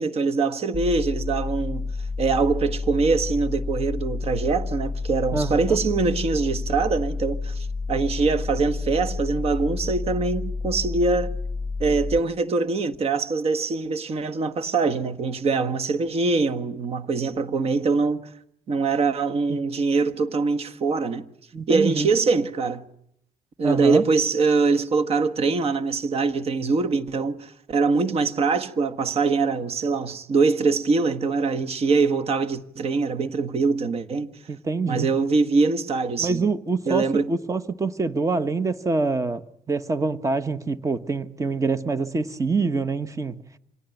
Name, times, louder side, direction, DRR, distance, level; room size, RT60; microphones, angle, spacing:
voice 1, 0.0-1.9 2.2-11.3 11.8-18.3 18.7-21.3 21.7-22.8 23.6-34.3 34.9-36.5 36.8-37.3, right 4 dB, 45° right, 1.5 m, -23 dB
sound 1, 0.7-12.2, left 3 dB, ahead, 2.3 m, -30 dB
voice 2, 5.3-5.8 19.5-19.6 21.5-22.1 23.6-24.0 34.5-35.1 36.2-39.4 39.7-43.4, right 4 dB, 20° right, 1.2 m, -25 dB
26.0 x 18.0 x 9.2 m
cardioid pair, 115°, 15 cm